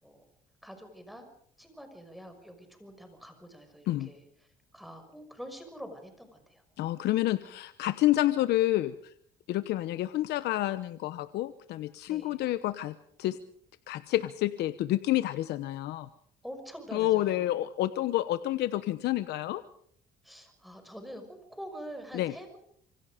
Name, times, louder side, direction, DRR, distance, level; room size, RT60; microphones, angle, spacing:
voice 1, 0.6-1.3 1.6-4.2 4.7-6.6 12.1-12.4 16.4-17.5 20.2-22.6, equal, ahead, 6 dB, 5.9 m, -45 dB
voice 2, 6.8-9.1 9.5-13.4 13.9-16.1 16.9-19.6 22.1-22.3, left 15 dB, 80° left, 12 dB, 1.0 m, -29 dB
26.5 x 25.0 x 5.1 m, 0.64 s
cardioid pair, 110°, 17 cm